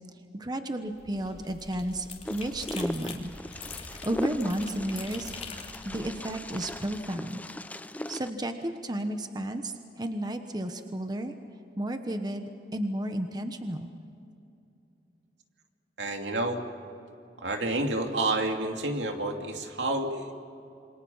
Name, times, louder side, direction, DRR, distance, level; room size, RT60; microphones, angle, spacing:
voice 1, 0.3-3.3 3.7-5.3 5.8-7.4 8.1-11.3 11.8-13.9, right 1 dB, 25° right, 7 dB, 1.1 m, -33 dB
sound 1, 0.9-7.0, left 4 dB, 40° left, 3.0 m, -44 dB
Wind, 2.2-8.3, left 1 dB, 10° left, 0.6 m, -38 dB
voice 2, 16.0-16.6 17.4-20.4, right 2 dB, 80° right, 3 dB, 2.6 m, -29 dB
28.0 x 25.0 x 5.7 m, 2.7 s
head